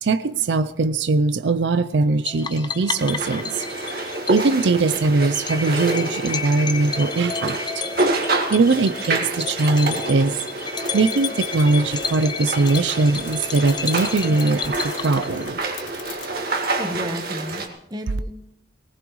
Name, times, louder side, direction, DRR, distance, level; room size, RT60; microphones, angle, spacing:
voice 1, 0.0-3.9 4.3-10.4 10.6-15.6, right 3 dB, 75° right, 0.5 m, -21 dB
sound 1, 2.3-15.7, left 5 dB, 25° left, 0.7 m, -32 dB
sound 2, 3.0-17.7, right 2 dB, 55° right, 1.9 m, -28 dB
sound 3, 10.8-16.3, left 9 dB, 90° left, 1.2 m, -41 dB
voice 2, 16.8-18.5, equal, 20° right, 1.1 m, -33 dB
19.0 x 18.5 x 3.1 m
head